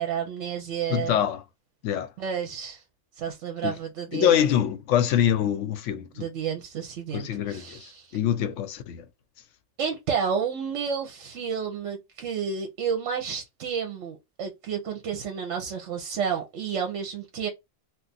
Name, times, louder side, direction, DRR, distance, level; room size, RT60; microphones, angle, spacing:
voice 1, 0.0-1.2 2.2-2.8 3.2-4.3 6.2-8.2 9.8-17.5, right 7 dB, 70° right, 0.9 m, -31 dB
voice 2, 0.9-1.4 1.8-2.1 3.6-3.7 4.1-6.3 7.1-9.1, left 10 dB, 75° left, 0.9 m, -25 dB
2.4 x 2.3 x 3.9 m
omnidirectional pair, 1.3 m